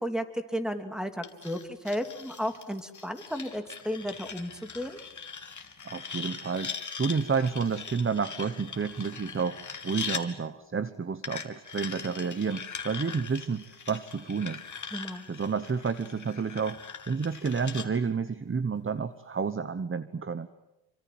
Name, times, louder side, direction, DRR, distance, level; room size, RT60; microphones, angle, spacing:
voice 1, 0.0-5.0 14.9-15.2, equal, ahead, 7 dB, 3.1 m, -33 dB
sound 1, 1.2-10.2 11.2-17.9, left 5 dB, 40° left, 2.8 m, -41 dB
voice 2, 5.8-14.6 15.3-20.5, right 5 dB, 25° right, 12 dB, 1.1 m, -30 dB
28.0 x 25.0 x 7.8 m, 0.95 s
cardioid pair, 95°, 46 cm